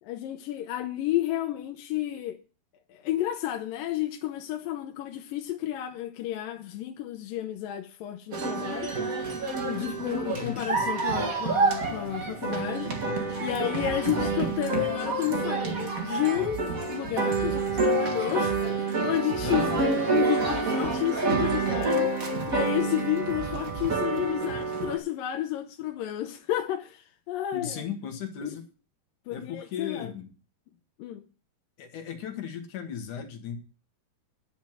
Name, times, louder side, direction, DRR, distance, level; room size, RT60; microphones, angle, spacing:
voice 1, 0.0-2.4 2.9-9.0 9.7-13.0 13.4-22.1 22.5-27.9 28.4-28.5 29.3-30.1 31.0-31.2, left 13 dB, 75° left, 2.3 m, -31 dB
sound 1, 8.3-25.0, right 3 dB, 40° right, 1.2 m, -28 dB
voice 2, 10.3-10.6 12.9-13.4 19.4-19.7 27.5-28.6 29.3-30.3 31.8-33.6, left 7 dB, 60° left, 2.6 m, -37 dB
sound 2, 16.4-24.2, right 8 dB, 60° right, 2.8 m, -41 dB
10.5 x 6.2 x 8.8 m
omnidirectional pair, 4.6 m